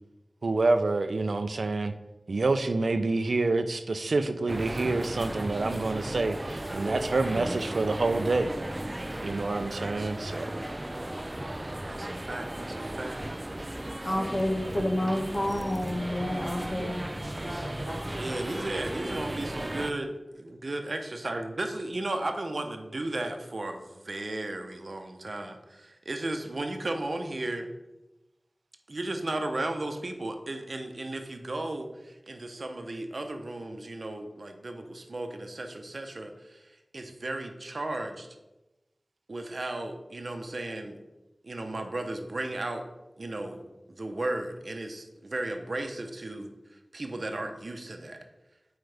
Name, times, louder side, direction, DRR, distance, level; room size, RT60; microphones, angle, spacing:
voice 1, 0.4-1.9 2.3-8.5 9.2-10.5, right 3 dB, 90° right, 9 dB, 0.4 m, -27 dB
sound 1, 4.5-19.9, right 1 dB, 25° right, 0.3 m, -35 dB
voice 2, 9.7-10.1 11.9-13.2 16.4-16.6 18.2-27.7 28.9-38.3 39.3-41.0 41.4-42.8 43.2-46.5 46.9-48.2, right 2 dB, 65° right, 5 dB, 0.8 m, -35 dB
voice 3, 14.0-18.1, left 1 dB, 45° left, -1 dB, 1.6 m, -30 dB
7.9 x 4.8 x 3.4 m, 1.0 s
wide cardioid pair, 55°, 0 cm